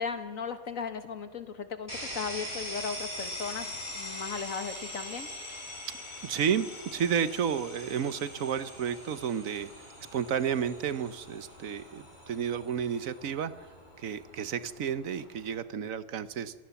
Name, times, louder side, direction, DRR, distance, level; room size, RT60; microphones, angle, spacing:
voice 1, 0.0-5.3, left 5 dB, 70° left, 9 dB, 2.0 m, -36 dB
sound 1, 1.9-15.6, left 1 dB, 35° left, 5.6 m, -43 dB
voice 2, 6.2-9.7 10.1-13.7 14.0-16.5, right 8 dB, 75° right, 14 dB, 1.3 m, -31 dB
27.0 x 17.5 x 7.1 m, 1.4 s
omnidirectional pair, 1.4 m